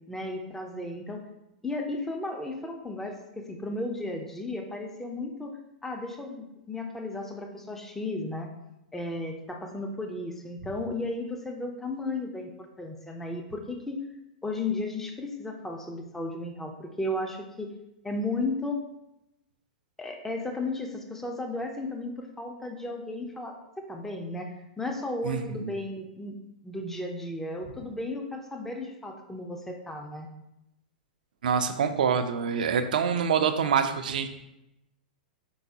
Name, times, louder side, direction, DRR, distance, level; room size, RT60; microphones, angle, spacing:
voice 1, 0.1-1.2 1.6-8.5 8.9-14.0 14.4-17.7 18.0-18.8 20.0-26.4 26.6-30.3, left 2 dB, 5° left, 3 dB, 0.5 m, -34 dB
voice 2, 25.2-25.7 31.4-34.3, right 7 dB, 70° right, 9 dB, 0.4 m, -26 dB
4.6 x 3.8 x 2.7 m, 0.89 s
hypercardioid pair, 105°, 5 cm